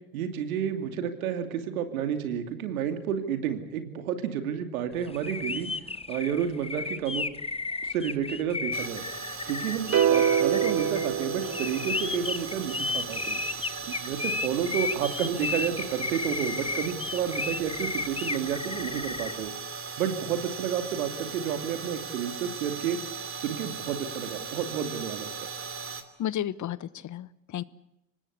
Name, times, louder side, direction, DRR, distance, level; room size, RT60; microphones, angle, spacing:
voice 1, 0.1-5.8 6.1-7.2 7.8-9.0 9.5-13.4 13.9-19.6 20.0-23.0 23.4-25.5, right 8 dB, 85° right, 8 dB, 2.8 m, -31 dB
sound 1, 5.1-19.4, left 4 dB, 15° left, 1.1 m, -33 dB
sound 2, 8.7-26.0, right 5 dB, 30° right, 3.0 m, -38 dB
sound 3, 9.9-12.2, right 9 dB, 45° right, 2.0 m, -25 dB
voice 2, 26.2-27.6, left 11 dB, 45° left, 18 dB, 1.1 m, -32 dB
25.0 x 19.5 x 8.3 m, 0.85 s
hypercardioid pair, 75°, 41 cm